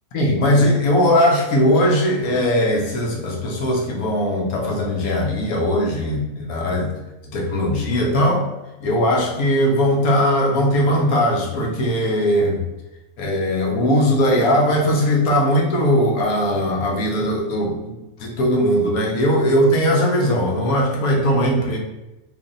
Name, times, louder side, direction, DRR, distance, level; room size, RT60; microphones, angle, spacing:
voice 1, 0.1-6.9 7.3-8.5 8.8-12.6 13.2-17.9 18.2-21.8, equal, 90° left, 0 dB, 1.2 m, -19 dB
3.3 x 2.5 x 3.8 m, 1.0 s
omnidirectional pair, 1.5 m